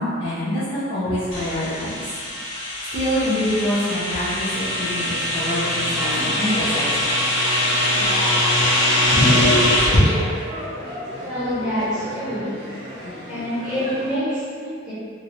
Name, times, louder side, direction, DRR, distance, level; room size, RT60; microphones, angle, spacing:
voice 1, 0.0-2.0 2.9-7.1, left 1 dB, 30° left, -15 dB, 0.8 m, -25 dB
sound 1, 1.3-10.1, left 1 dB, 80° left, 1.0 m, -21 dB
sound 2, 5.5-14.1, equal, 25° right, 0.7 m, -34 dB
voice 2, 11.2-12.5 13.3-14.9, equal, ahead, -18 dB, 1.4 m, -26 dB
3.0 x 2.9 x 2.6 m, 2.1 s
head